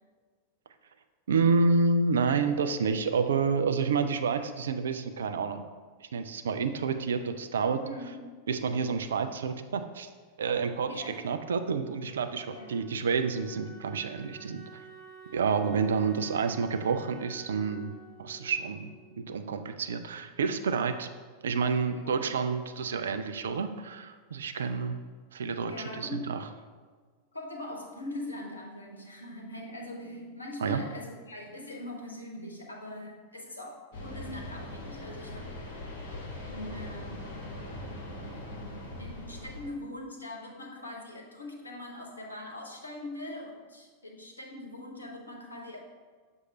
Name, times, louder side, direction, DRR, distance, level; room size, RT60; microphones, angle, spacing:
voice 1, 1.3-5.6 6.0-7.8 8.5-10.1 10.4-14.7 15.3-17.9 18.2-18.9 19.2-21.1 21.4-25.0 25.3-25.7 26.0-26.4 30.6-30.8, right 5 dB, 65° right, 8 dB, 0.4 m, -29 dB
voice 2, 7.8-8.2 10.8-11.2 12.4-12.8 21.9-22.2 24.5-24.8 25.6-26.3 27.3-35.5 36.4-37.3 39.0-45.8, left 1 dB, 80° left, 0 dB, 0.9 m, -42 dB
Wind instrument woodwind instrument, 11.1-19.8, right 3 dB, 5° right, 1.1 m, -51 dB
sound 1, 33.9-39.7, left 1 dB, 55° left, 1.1 m, -41 dB
6.4 x 2.7 x 5.4 m, 1.5 s
figure-of-eight pair, 90°, 0 cm